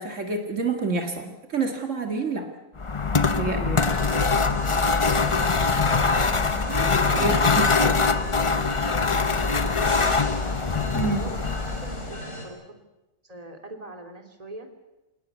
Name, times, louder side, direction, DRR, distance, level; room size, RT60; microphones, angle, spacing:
voice 1, 0.0-2.5 3.3-3.9 7.1-7.7 10.9-11.3, right 4 dB, 70° right, 4 dB, 2.3 m, -28 dB
sound 1, 2.8-12.2, left 4 dB, 30° left, 0.8 m, -23 dB
sound 2, 3.8-12.5, left 1 dB, 65° left, 5.8 m, -36 dB
voice 2, 6.6-10.4 11.1-12.8 13.2-14.7, right 2 dB, 30° right, 5 dB, 2.9 m, -42 dB
26.5 x 19.0 x 8.2 m, 1.0 s
omnidirectional pair, 1.3 m